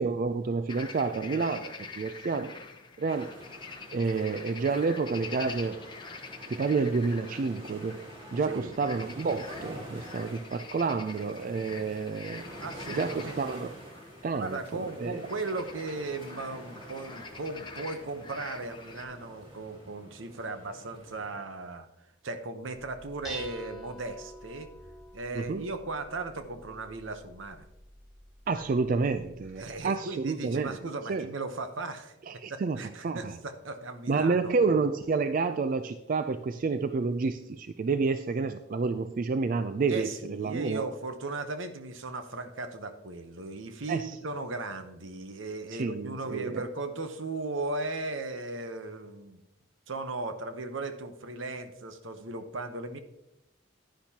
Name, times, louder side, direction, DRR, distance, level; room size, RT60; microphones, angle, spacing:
voice 1, 0.0-2.6 3.0-3.3 3.9-5.8 6.5-8.0 8.3-12.4 12.9-13.7 14.2-15.3 25.4-25.7 28.5-30.8 31.1-31.3 32.3-33.4 34.1-40.8 43.9-44.2 45.7-46.6, right 4 dB, 45° right, 10 dB, 0.3 m, -29 dB
sound 1, 0.7-19.0, left 4 dB, 25° left, 0.8 m, -46 dB
sound 2, 3.1-21.3, equal, 25° right, 2.0 m, -48 dB
voice 2, 12.6-13.4 14.3-21.9 22.2-24.7 25.1-27.6 29.6-32.2 32.5-34.5 39.9-49.4 49.9-53.0, right 3 dB, 70° right, 8 dB, 0.9 m, -37 dB
Dishes pots and pans, 22.7-29.8, equal, ahead, 3.8 m, -48 dB
10.5 x 10.0 x 2.8 m, 0.88 s
head